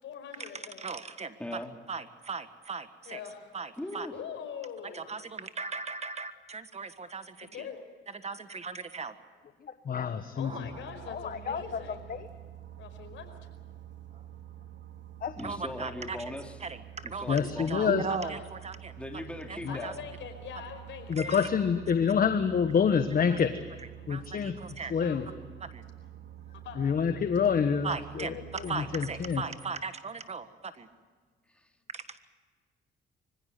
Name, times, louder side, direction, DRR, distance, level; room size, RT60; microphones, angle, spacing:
voice 1, 0.0-0.8 3.0-3.5 4.1-5.0 7.5-7.8 10.3-12.1 12.8-13.3 17.4-17.9 18.2-18.3 19.7-21.5 24.9-25.3 26.6-26.8 28.3-28.8, left 7 dB, 75° left, 6 dB, 5.0 m, -43 dB
voice 2, 0.8-1.4 1.9-3.2 3.5-4.1 4.8-7.7 8.1-9.1 10.4-10.6 15.4-16.3 16.6-17.4 17.7-19.0 19.5-19.9 21.2-21.5 23.3-23.4 23.8-25.0 25.7-25.8 27.8-28.4 28.7-30.9 31.9-32.2, right 4 dB, 35° right, 11 dB, 1.5 m, -38 dB
voice 3, 1.4-1.7 3.8-4.2 15.4-16.6 17.0-17.8 19.0-19.9 31.5-31.7, left 1 dB, 5° left, 4 dB, 2.6 m, -39 dB
voice 4, 9.9-10.5 11.1-11.6 12.1-12.2 17.3-18.0 19.7-19.8 21.1-23.5 24.1-24.5 24.9-25.2 26.8-27.9 28.6-29.4, left 6 dB, 45° left, 9 dB, 1.3 m, -27 dB
sound 1, 10.6-29.5, right 11 dB, 65° right, 3.0 m, -48 dB
24.5 x 16.0 x 9.4 m, 1.5 s
cardioid pair, 90°, 20 cm